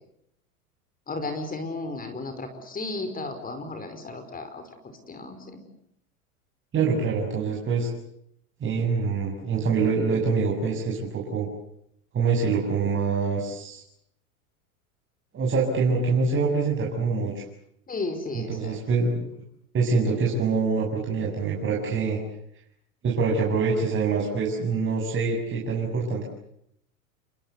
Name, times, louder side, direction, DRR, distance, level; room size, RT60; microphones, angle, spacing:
voice 1, 1.1-4.6 5.1-5.6 6.7-6.9 17.9-18.8, left 3 dB, 20° left, 9 dB, 5.1 m, -34 dB
voice 2, 6.7-7.9 8.6-11.5 12.1-13.8 15.3-17.4 18.3-19.2 19.7-22.2 23.0-26.2, right 4 dB, 25° right, -2 dB, 7.4 m, -25 dB
29.5 x 24.0 x 8.2 m, 0.73 s
hypercardioid pair, 105°, 44 cm